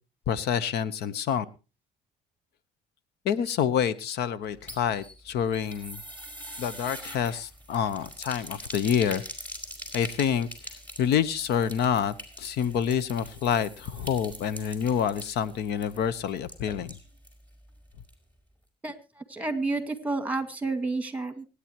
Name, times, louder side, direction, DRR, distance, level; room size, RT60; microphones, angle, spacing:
voice 1, 0.3-1.4 3.2-6.0 6.6-9.2 9.9-10.5 11.0-17.0, left 8 dB, 75° left, 17 dB, 1.0 m, -27 dB
sound 1, 4.4-17.4 17.7-17.8 18.1-18.2, equal, 10° left, 4.8 m, -43 dB
voice 2, 19.3-21.5, right 3 dB, 10° right, 8 dB, 2.2 m, -30 dB
25.0 x 9.9 x 3.0 m, 0.31 s
cardioid pair, 110°, 17 cm